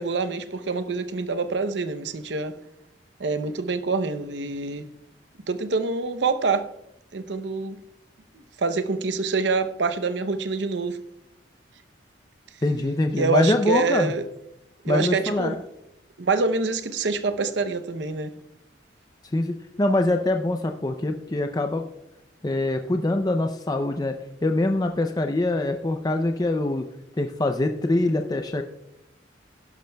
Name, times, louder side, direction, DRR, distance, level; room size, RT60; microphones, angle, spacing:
voice 1, 0.0-2.6 3.2-4.9 5.5-6.7 7.1-7.8 8.3-11.0 13.2-14.2 14.8-15.6 16.2-18.3, right 4 dB, 75° right, 0.7 m, -26 dB
voice 2, 12.6-14.1 14.9-15.6 19.3-21.8 22.4-24.1 24.4-26.9 27.2-28.6, left 2 dB, 20° left, 0.5 m, -24 dB
16.0 x 11.5 x 2.3 m
head